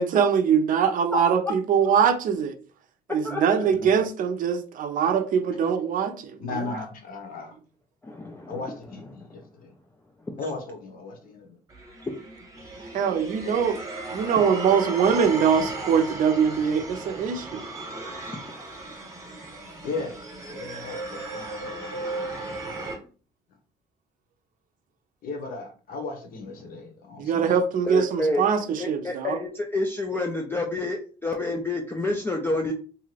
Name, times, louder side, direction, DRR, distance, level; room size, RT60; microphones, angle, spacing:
voice 1, 0.0-2.5 3.1-6.4 12.9-13.8 14.1-17.6 27.2-29.4, right 7 dB, 55° right, 0.5 m, -23 dB
voice 2, 3.7-4.0 6.4-7.6 8.5-9.7 10.4-11.6 19.8-20.2 20.4-22.3 25.2-27.6, left 3 dB, 60° left, 0.9 m, -36 dB
voice 3, 8.0-8.6 10.3-10.4 18.2-18.3 27.9-28.4 28.8-32.7, left 2 dB, 15° left, 0.4 m, -28 dB
sound 1, 11.7-23.0, right 2 dB, 20° right, 1.0 m, -36 dB
2.6 x 2.4 x 3.2 m
cardioid pair, 110°, 17 cm